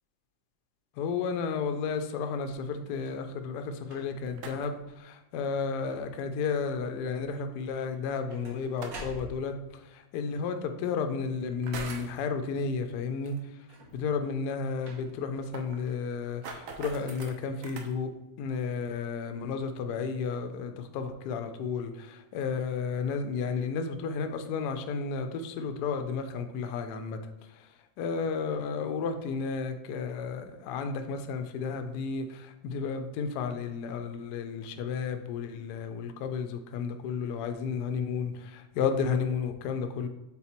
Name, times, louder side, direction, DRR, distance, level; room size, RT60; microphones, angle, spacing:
voice 1, 1.0-13.6 13.9-18.1 18.4-40.1, left 5 dB, 75° left, 7 dB, 0.9 m, -32 dB
sound 1, 2.9-3.3 3.8-4.4 5.0-5.3 5.6-6.2 7.9-9.7 13.6-14.2 14.8-15.4 16.2-16.3, right 1 dB, 50° right, 1.3 m, -48 dB
sound 2, 4.2-4.9 6.5-6.6 8.6-9.2 10.3-10.4 11.5-12.2 13.2-13.4 13.7-13.8 14.2-14.3 14.5-14.6 15.1-17.9, right 4 dB, 75° right, 0.7 m, -43 dB
5.7 x 3.9 x 4.3 m, 0.99 s
omnidirectional pair, 2.3 m